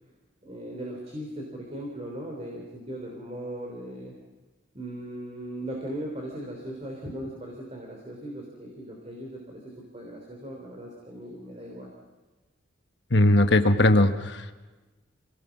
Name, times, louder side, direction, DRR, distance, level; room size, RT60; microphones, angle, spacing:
voice 1, 0.4-4.1 4.7-11.9, right 1 dB, 30° right, 0 dB, 3.5 m, -38 dB
voice 2, 13.1-14.5, left 1 dB, 60° left, 7 dB, 1.2 m, -20 dB
27.5 x 18.0 x 6.0 m, 1.2 s
head